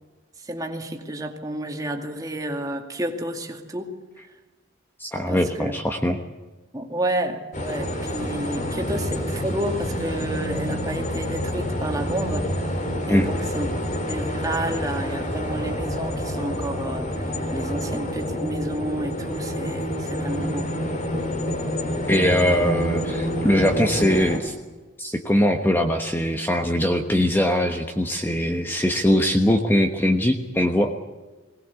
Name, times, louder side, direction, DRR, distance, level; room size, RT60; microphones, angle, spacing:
voice 1, 0.4-3.9 5.3-5.8 6.7-12.5 13.1-13.8 14.1-17.2 17.5-20.7, right 1 dB, 20° right, 3 dB, 2.3 m, -30 dB
voice 2, 5.0-6.2 13.1-13.3 22.1-24.5 25.0-30.9, equal, 10° left, 4 dB, 1.2 m, -21 dB
sound 1, 7.5-24.4, equal, 40° left, 3.1 m, -28 dB
21.5 x 19.0 x 8.3 m, 1.2 s
head